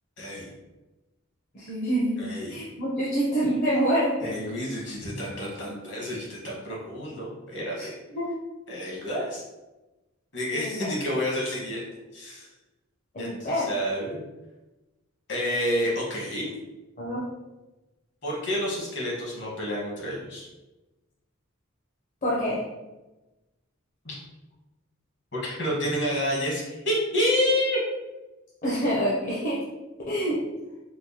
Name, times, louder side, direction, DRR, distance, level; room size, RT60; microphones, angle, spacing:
voice 1, 0.2-0.5 2.2-2.6 4.2-7.9 8.7-9.4 10.3-11.8 12.1-12.5 13.2-14.2 15.3-16.5 18.2-20.5 24.0-24.2 25.3-27.8, equal, 55° left, -4 dB, 1.2 m, -29 dB
voice 2, 1.5-2.2 2.5-4.3 7.8-7.9 8.1-8.4 10.5-10.9 13.1-13.7 17.0-17.2 22.2-22.6 28.6-29.6 30.1-30.4, equal, 40° left, -7 dB, 0.6 m, -26 dB
4.5 x 2.2 x 2.8 m, 1.1 s
head